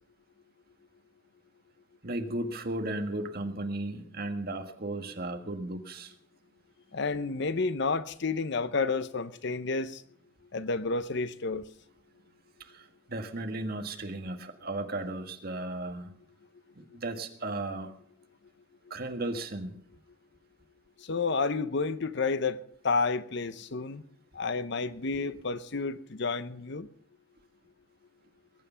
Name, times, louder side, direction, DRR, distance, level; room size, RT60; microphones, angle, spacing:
voice 1, 2.0-6.1 12.6-16.1 16.8-17.9 18.9-19.7, right 2 dB, 50° right, 1.7 m, -35 dB
voice 2, 6.9-10.0 10.5-11.6 21.0-24.0 24.3-26.9, left 4 dB, 60° left, 0.8 m, -30 dB
21.0 x 9.8 x 5.7 m
head